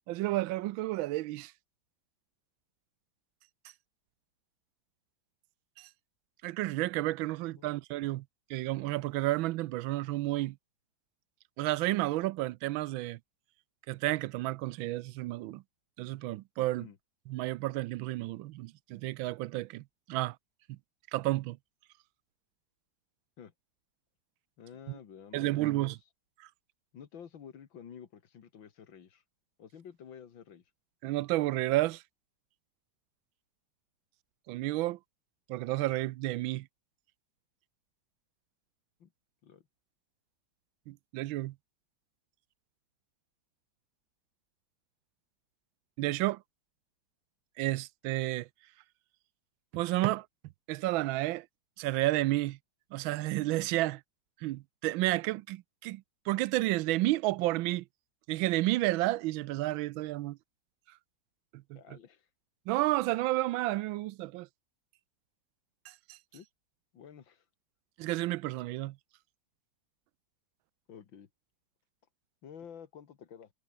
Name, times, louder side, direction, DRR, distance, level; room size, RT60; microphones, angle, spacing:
voice 1, 0.1-1.5 5.8-5.9 6.4-8.2 8.5-10.6 11.6-13.2 13.9-15.6 16.0-16.9 17.3-20.4 20.7-20.8 21.1-21.6 24.9-25.0 25.3-26.0 26.4-26.5 31.0-32.0 34.5-35.0 35.5-36.7 40.9-41.5 46.0-46.4 47.6-48.5 49.7-50.3 50.7-51.5 51.8-52.6 52.9-54.0 54.4-57.8 58.3-60.4 61.5-61.8 62.7-64.5 65.9-66.2 68.0-69.0, right 17 dB, 85° right, 1.4 m, -31 dB
voice 2, 24.6-25.9 26.9-29.2 29.6-30.6 39.0-39.1 39.4-39.6 61.8-62.3 66.3-66.5 66.9-67.4 70.9-71.3 72.4-73.5, left 8 dB, 75° left, 2.4 m, -50 dB
omnidirectional pair, 2.1 m